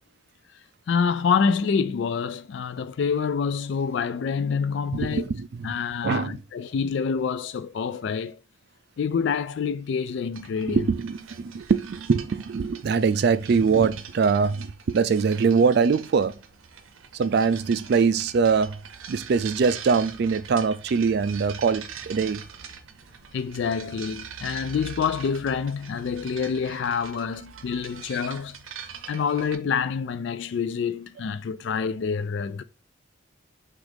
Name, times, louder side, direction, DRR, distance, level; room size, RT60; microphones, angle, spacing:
voice 1, 0.9-5.3 5.6-8.4 9.0-10.8 23.3-28.6 29.1-32.6, left 6 dB, 60° left, 0.3 m, -27 dB
voice 2, 4.9-5.7 6.0-6.4 10.6-16.3 17.1-18.8 19.1-22.4, right 5 dB, 55° right, 0.3 m, -23 dB
sound 1, 10.3-29.6, right 7 dB, 85° right, 0.6 m, -43 dB
6.1 x 2.5 x 3.4 m
head